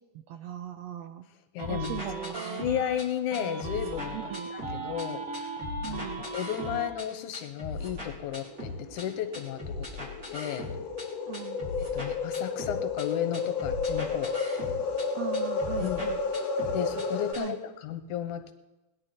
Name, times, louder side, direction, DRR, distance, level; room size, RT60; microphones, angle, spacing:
voice 1, 0.3-1.3 1.7-2.7 4.1-4.5 5.8-6.3 11.3-11.6 15.1-16.2 17.4-17.6, right 12 dB, 85° right, 8 dB, 1.5 m, -39 dB
voice 2, 1.5-2.0 2.5-5.5 5.8-10.7 11.8-14.4 15.8-16.0 16.7-18.5, left 10 dB, 75° left, 8 dB, 2.4 m, -34 dB
sound 1, 1.6-3.0 3.3-5.0 5.3-7.0 7.3-9.0 9.3-11.0 11.3-13.0 13.3-15.0 15.3-17.0 17.3-17.4, left 2 dB, 30° right, 4.3 m, -39 dB
sound 2, 1.6-3.0 3.3-6.9, right 3 dB, 55° right, 2.2 m, -37 dB
sound 3, 8.3-17.3, left 4 dB, 60° left, 2.4 m, -32 dB
20.0 x 11.0 x 4.3 m, 1.0 s
omnidirectional pair, 3.6 m